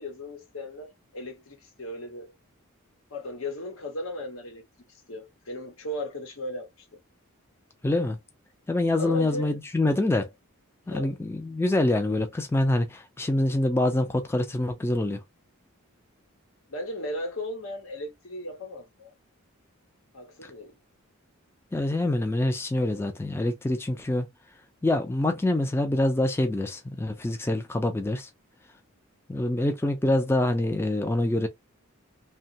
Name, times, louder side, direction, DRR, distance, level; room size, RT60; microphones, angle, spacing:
voice 1, 0.0-2.3 3.1-4.6 5.1-6.9 9.0-9.6 10.9-11.2 16.7-19.1 20.1-20.7, left 1 dB, 70° left, 1.0 m, -36 dB
voice 2, 7.8-8.2 8.7-10.3 10.9-15.2 21.7-24.3 24.8-28.3 29.3-31.5, left 1 dB, 10° left, 0.4 m, -25 dB
2.9 x 2.2 x 2.6 m
head